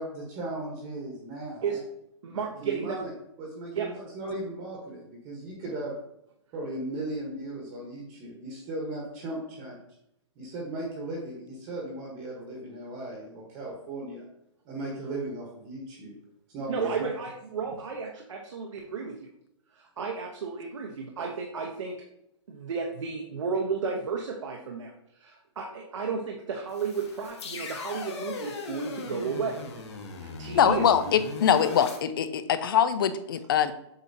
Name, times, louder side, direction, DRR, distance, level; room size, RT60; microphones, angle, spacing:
voice 1, 0.0-1.8 2.3-3.1 3.4-5.9 6.5-9.8 10.4-14.3 14.6-16.2 16.5-17.1, right 2 dB, 20° right, -1 dB, 1.1 m, -37 dB
voice 2, 2.2-3.0 3.7-3.9 16.7-19.3 19.7-22.0 22.5-29.6 30.2-30.9, right 5 dB, 85° right, 0 dB, 1.0 m, -33 dB
sound 1, 26.7-32.0, left 4 dB, 65° left, 1.4 m, -39 dB
voice 3, 30.5-33.7, left 8 dB, 50° left, 12 dB, 0.5 m, -23 dB
7.8 x 4.4 x 2.7 m, 0.79 s
hypercardioid pair, 170°, 15 cm